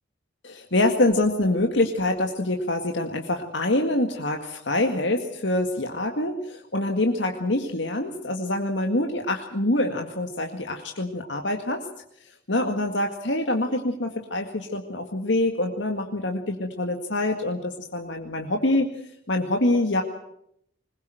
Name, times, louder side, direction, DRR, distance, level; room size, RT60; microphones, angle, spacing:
voice 1, 0.4-11.8 12.5-18.9 19.3-20.0, left 1 dB, 75° left, 3 dB, 2.0 m, -25 dB
21.5 x 21.0 x 8.0 m, 0.74 s
head